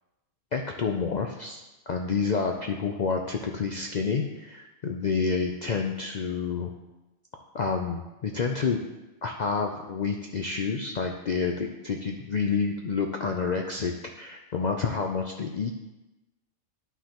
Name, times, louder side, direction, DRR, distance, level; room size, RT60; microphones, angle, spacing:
voice 1, 0.5-6.7 7.5-8.8 9.2-15.7, left 5 dB, 65° left, 2 dB, 0.4 m, -29 dB
11.5 x 5.8 x 2.9 m, 1.1 s
omnidirectional pair, 1.4 m